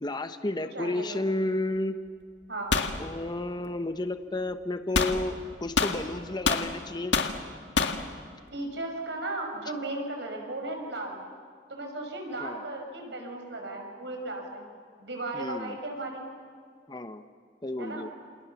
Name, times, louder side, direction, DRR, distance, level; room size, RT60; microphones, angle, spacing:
voice 1, 0.0-2.0 3.0-5.4 5.6-7.2 12.4-12.6 15.3-15.8 16.9-17.2 17.6-18.1, left 2 dB, 25° left, 9 dB, 0.9 m, -31 dB
voice 2, 0.7-1.2 2.5-2.8 8.5-11.2 11.7-14.6 15.0-16.2 17.8-18.1, right 2 dB, 70° right, 2 dB, 5.6 m, -36 dB
sound 1, 2.7-3.0 4.9-5.2 5.8-6.7 7.1-7.4 7.8-8.0, left 4 dB, 80° left, 1.7 m, -25 dB
28.5 x 27.5 x 7.1 m, 2.2 s
head